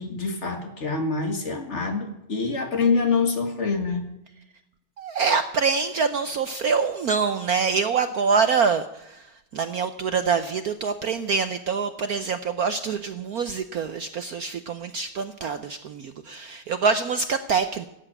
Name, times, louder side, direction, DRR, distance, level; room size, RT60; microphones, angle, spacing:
voice 1, 0.0-4.0, left 4 dB, 35° left, 5 dB, 1.9 m, -25 dB
voice 2, 5.0-9.3 9.5-17.9, right 5 dB, 65° right, 10 dB, 0.9 m, -25 dB
15.5 x 8.2 x 8.8 m, 0.88 s
omnidirectional pair, 2.3 m